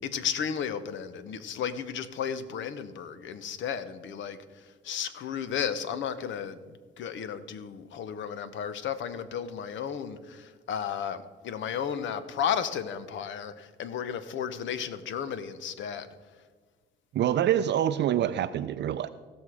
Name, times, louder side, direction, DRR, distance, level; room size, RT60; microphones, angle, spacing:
voice 1, 0.0-16.1, left 8 dB, 75° left, 13 dB, 0.8 m, -34 dB
voice 2, 17.1-19.1, right 11 dB, 60° right, 10 dB, 0.4 m, -26 dB
16.0 x 6.2 x 4.8 m, 1.5 s
cardioid pair, 90°, 20 cm